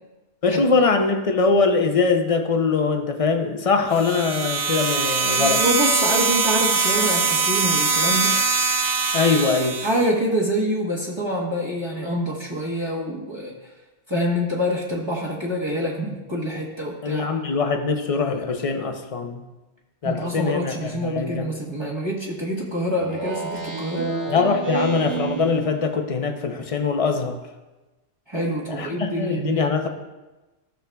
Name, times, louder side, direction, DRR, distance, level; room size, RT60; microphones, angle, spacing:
voice 1, 0.4-5.6 9.1-9.8 17.0-19.4 20.0-21.5 24.3-27.4 28.7-29.9, left 4 dB, 35° left, 5 dB, 0.6 m, -22 dB
sound 1, 3.9-10.1, right 4 dB, 50° right, 0.9 m, -22 dB
voice 2, 5.4-8.4 9.8-13.5 14.1-17.3 20.0-24.1 28.3-29.7, equal, 25° right, -4 dB, 1.1 m, -26 dB
Speech synthesizer, 23.0-26.0, right 4 dB, 70° right, 2.0 m, -29 dB
14.0 x 6.4 x 2.2 m, 1.1 s
omnidirectional pair, 1.2 m